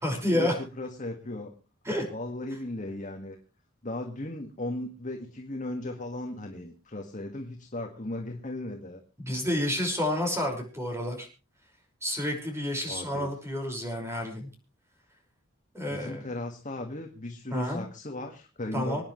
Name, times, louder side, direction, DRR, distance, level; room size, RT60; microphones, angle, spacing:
voice 1, 0.0-0.6 1.9-2.1 9.2-11.3 12.0-14.5 15.7-16.3 17.5-17.8 18.7-19.0, left 1 dB, 15° right, 2 dB, 5.7 m, -29 dB
voice 2, 0.8-1.5 2.1-3.4 3.8-9.0 12.9-13.3 15.9-19.0, left 1 dB, 35° left, 3 dB, 2.0 m, -36 dB
27.0 x 10.0 x 3.3 m, 0.32 s
head